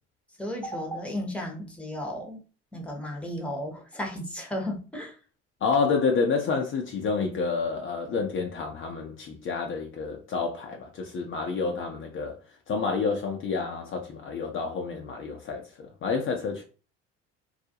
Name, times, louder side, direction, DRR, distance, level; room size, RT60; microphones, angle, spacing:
voice 1, 0.4-2.4 2.7-5.2, left 1 dB, 5° left, 0.8 m, -34 dB
voice 2, 5.6-12.4 12.7-16.6, left 4 dB, 40° left, 0.5 m, -29 dB
2.3 x 2.0 x 2.7 m
hypercardioid pair, 70°, 32 cm